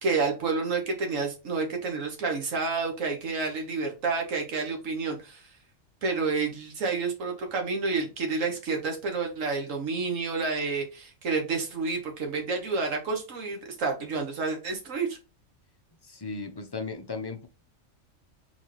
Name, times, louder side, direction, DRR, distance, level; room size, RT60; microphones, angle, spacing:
voice 1, 0.0-5.5 6.0-15.2, right 4 dB, 75° right, 3 dB, 1.7 m, -29 dB
voice 2, 16.0-17.5, left 4 dB, 35° left, 6 dB, 0.4 m, -36 dB
4.4 x 3.9 x 3.0 m, 0.30 s
omnidirectional pair, 1.3 m